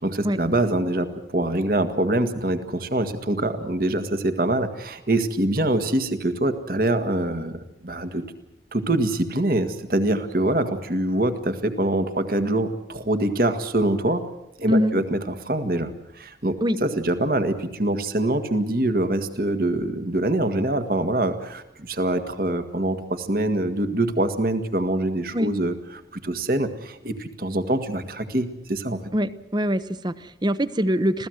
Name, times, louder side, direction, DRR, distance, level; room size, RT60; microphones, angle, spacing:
voice 1, 0.0-8.2 8.7-14.2 14.6-29.0, right 1 dB, 50° right, 9 dB, 1.7 m, -24 dB
voice 2, 29.1-31.3, equal, 25° right, 14 dB, 0.8 m, -23 dB
26.5 x 16.5 x 7.9 m, 0.87 s
head